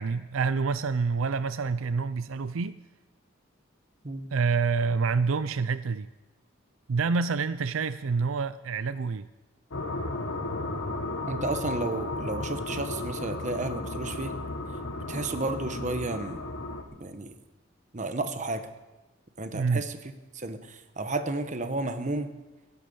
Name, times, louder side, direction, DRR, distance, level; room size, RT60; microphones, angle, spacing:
voice 1, 0.0-2.7 4.3-6.1 6.9-9.3 19.5-19.9, right 4 dB, 85° right, 15 dB, 0.5 m, -27 dB
sound 1, 9.7-16.8, left 2 dB, 90° left, 1.7 m, -34 dB
voice 2, 11.3-14.4 15.1-16.4 17.0-17.3 17.9-18.7 19.4-19.9 20.3-22.3, right 2 dB, 40° right, 9 dB, 1.2 m, -32 dB
13.5 x 11.5 x 7.0 m, 1.1 s
head